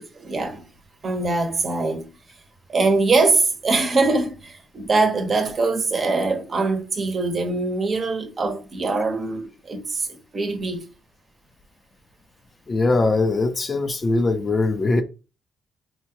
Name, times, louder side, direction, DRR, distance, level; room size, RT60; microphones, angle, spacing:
voice 1, 0.2-0.6 1.0-2.1 2.7-10.1 10.3-10.9, right 3 dB, 40° right, 1.0 m, -22 dB
voice 2, 12.7-15.0, left 2 dB, 30° left, 0.5 m, -21 dB
4.3 x 2.3 x 2.9 m
cardioid pair, 90°, 0 cm